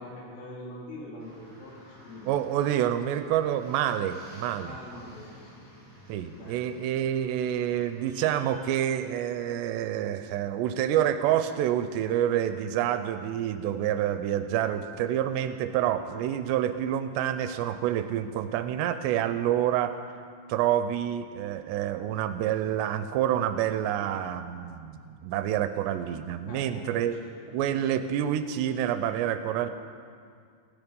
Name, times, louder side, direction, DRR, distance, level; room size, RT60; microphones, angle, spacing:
voice 1, 0.0-1.8 2.0-2.5 4.6-5.8 6.3-6.7 26.4-27.5, left 1 dB, 70° left, -5 dB, 5.7 m, -44 dB
sound 1, 1.2-8.5, equal, 15° left, 5.2 m, -53 dB
voice 2, 2.2-4.8 6.1-20.0 20.5-27.2 27.5-29.7, right 10 dB, 80° right, 10 dB, 2.7 m, -28 dB
16.5 x 16.0 x 5.3 m, 2.2 s
omnidirectional pair, 5.1 m